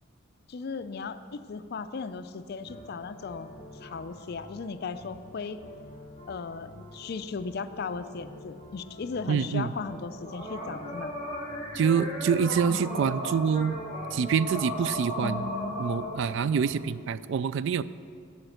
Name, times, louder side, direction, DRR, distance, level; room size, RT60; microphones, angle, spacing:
voice 1, 0.5-5.6 6.3-11.1 12.7-13.1 15.2-15.9, left 4 dB, 50° left, 12 dB, 0.4 m, -37 dB
sound 1, 2.6-16.9, equal, 25° left, 3.0 m, -39 dB
voice 2, 9.3-9.7 11.7-13.8 14.1-15.5 15.8-17.8, right 6 dB, 65° right, 16 dB, 0.3 m, -26 dB
10.5 x 5.8 x 7.9 m, 2.1 s
head